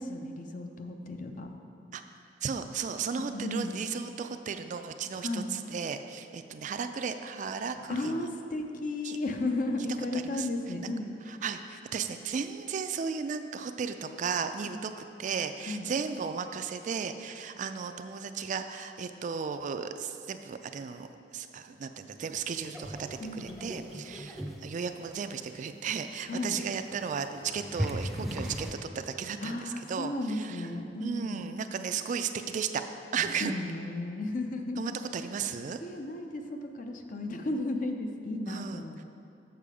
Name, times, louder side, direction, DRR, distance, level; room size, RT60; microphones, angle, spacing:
voice 1, 0.0-1.5 3.3-3.8 5.2-5.5 7.9-11.1 14.7-14.8 15.7-15.9 23.2-23.8 26.3-26.6 29.4-31.5 33.2-35.0 35.8-39.0, left 2 dB, 50° left, 4 dB, 0.6 m, -34 dB
voice 2, 2.4-8.1 9.0-9.2 10.1-10.5 11.3-30.7 31.0-32.8 33.1-33.5 34.8-35.8 38.5-38.8, right 6 dB, 45° right, 9 dB, 0.3 m, -35 dB
sound 1, 22.3-28.8, equal, ahead, 0.6 m, -39 dB
6.9 x 6.6 x 4.9 m, 2.6 s
head